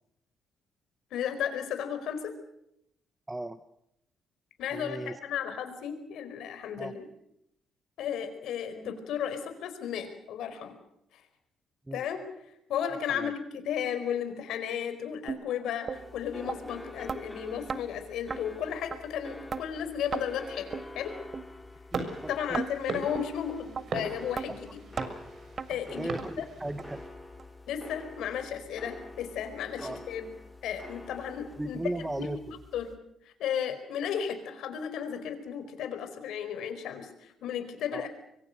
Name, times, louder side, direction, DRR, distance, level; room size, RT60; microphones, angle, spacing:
voice 1, 1.1-2.3 4.6-7.0 8.0-10.7 11.9-12.2 12.7-21.1 22.3-24.8 25.7-26.1 26.4-26.5 27.7-30.3 30.6-31.8 32.0-32.4 32.7-32.9 33.4-38.1, left 8 dB, 80° left, 8 dB, 4.7 m, -34 dB
voice 2, 3.3-3.6 4.7-5.2 6.8-6.9 11.9-12.1 13.1-13.3 21.9-22.6 24.5-24.7 25.9-27.0 29.8-30.0 31.6-32.6 37.9-38.1, right 1 dB, 15° right, 11 dB, 1.2 m, -36 dB
sound 1, 15.3-15.4 15.9-16.0 16.5-16.6 17.1-17.2 17.7-17.8 18.3-18.4 18.9-19.0 19.5-19.6 20.1-20.3 20.7-20.9 21.3-21.4 21.9-22.1 22.5-22.7 23.1-23.3 23.8-23.9 24.4-24.5 25.0-25.1 25.6-25.7 26.2-26.3 26.8-26.9 27.4-27.5 28.0-28.1, right 5 dB, 40° right, 1.2 m, -34 dB
sound 2, 15.9-33.0, left 2 dB, 10° left, 4.1 m, -47 dB
sound 3, 21.9-27.1, right 4 dB, 55° right, 6.9 m, -40 dB
25.0 x 23.0 x 6.7 m, 0.77 s
cardioid pair, 90°, 0 cm